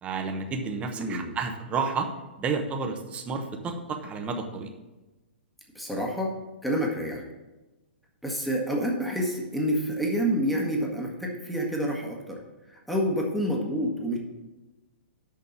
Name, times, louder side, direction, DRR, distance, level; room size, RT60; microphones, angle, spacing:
voice 1, 0.0-2.1 2.4-4.7, right 4 dB, 20° right, 4 dB, 1.0 m, -31 dB
voice 2, 0.9-1.3 5.7-6.3 6.6-7.2 8.2-12.4 12.7-14.2, equal, ahead, -1 dB, 1.5 m, -28 dB
6.7 x 5.3 x 7.1 m, 1.1 s
hypercardioid pair, 125°, 6 cm